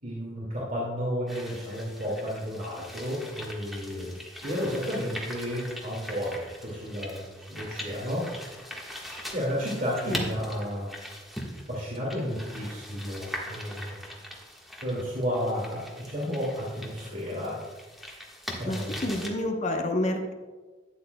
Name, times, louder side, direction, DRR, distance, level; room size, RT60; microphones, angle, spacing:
voice 1, 0.0-4.2 4.4-6.4 6.6-8.7 9.3-10.9 11.7-13.9 14.8-17.6 18.6-18.9, equal, 50° right, -5 dB, 2.0 m, -32 dB
sound 1, 1.3-19.3, equal, ahead, 1.4 m, -41 dB
voice 2, 18.6-20.3, left 1 dB, 40° left, 3 dB, 0.8 m, -29 dB
12.5 x 9.2 x 2.2 m, 1.3 s
head